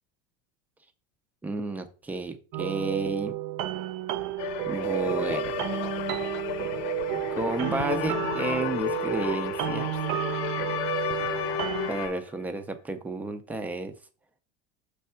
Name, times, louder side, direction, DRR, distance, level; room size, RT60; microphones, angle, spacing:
voice 1, 1.4-3.4 4.7-5.5 7.3-9.9 11.9-13.9, right 3 dB, 5° right, 8 dB, 0.4 m, -32 dB
sound 1, 2.5-11.9, right 14 dB, 50° right, 0.6 m, -32 dB
sound 2, 4.4-12.1, left 11 dB, 70° left, 0.8 m, -34 dB
sound 3, 7.3-12.3, left 11 dB, 90° left, 1.0 m, -36 dB
6.4 x 3.3 x 5.5 m, 0.36 s
cardioid pair, 160°, 34 cm